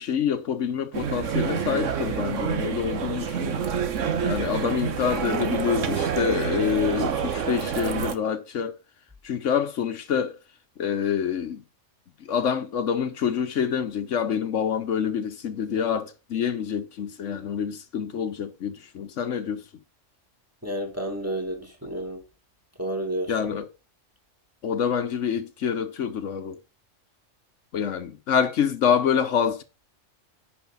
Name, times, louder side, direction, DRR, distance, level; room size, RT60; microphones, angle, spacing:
voice 1, 0.0-3.7 4.2-8.7 9.2-10.4 10.8-11.6 12.2-19.6 23.3-23.7 24.6-26.6 27.7-29.6, left 7 dB, 75° left, 1.2 m, -26 dB
sound 1, 0.9-8.2, right 7 dB, 80° right, 1.3 m, -27 dB
voice 2, 20.6-22.2 22.8-23.3, right 1 dB, 10° right, 2.2 m, -30 dB
10.5 x 4.9 x 5.3 m
omnidirectional pair, 1.3 m